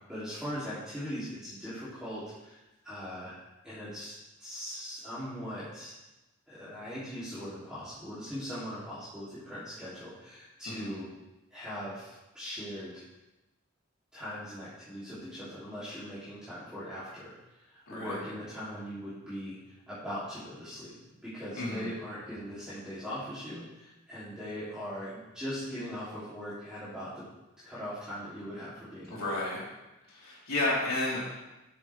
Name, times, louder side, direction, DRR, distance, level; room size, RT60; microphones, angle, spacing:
voice 1, 0.1-3.3 3.6-5.9 6.5-11.1 11.5-13.0 14.1-17.3 17.6-20.9 21.2-27.2 27.6-29.3, equal, 5° right, -13 dB, 3.1 m, -40 dB
voice 2, 17.9-18.2 21.6-21.9 29.1-29.6 30.1-31.2, left 2 dB, 80° left, -6 dB, 4.1 m, -32 dB
13.0 x 7.8 x 3.5 m, 1.0 s
head